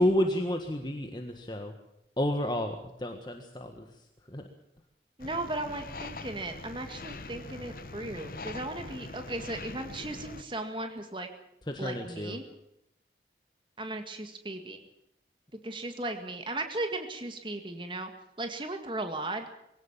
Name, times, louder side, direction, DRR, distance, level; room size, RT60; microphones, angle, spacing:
voice 1, 0.0-1.7 2.2-3.9 4.3-4.5 11.7-12.4, left 1 dB, 25° left, 4 dB, 1.6 m, -30 dB
sound 1, 5.2-10.4, left 3 dB, 50° left, 1.1 m, -43 dB
voice 2, 5.2-11.3 11.8-12.5 13.8-14.8 15.6-18.1 18.4-19.5, right 2 dB, 30° right, 6 dB, 1.9 m, -36 dB
22.5 x 17.5 x 7.4 m, 0.83 s
head